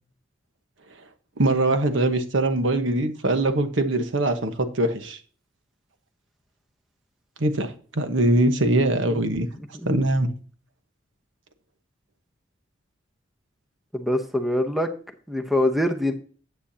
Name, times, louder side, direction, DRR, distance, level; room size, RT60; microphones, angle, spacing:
voice 1, 1.4-5.2 7.4-9.5 9.8-10.3, right 1 dB, 90° right, 1.2 m, -22 dB
voice 2, 9.1-9.4 13.9-14.9 15.3-16.1, left 1 dB, ahead, 0.8 m, -24 dB
10.0 x 8.5 x 2.8 m
head